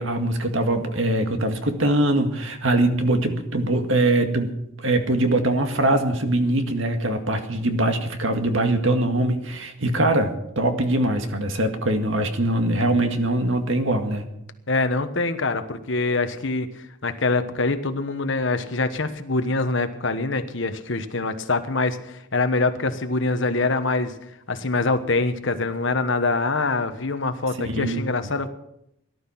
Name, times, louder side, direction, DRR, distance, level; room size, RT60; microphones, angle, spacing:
voice 1, 0.0-4.5 4.8-14.2 27.6-28.1, right 1 dB, 65° right, 6 dB, 1.9 m, -22 dB
voice 2, 14.7-24.1 24.5-28.5, left 3 dB, 60° left, 9 dB, 1.3 m, -24 dB
18.0 x 12.0 x 5.9 m, 0.80 s
head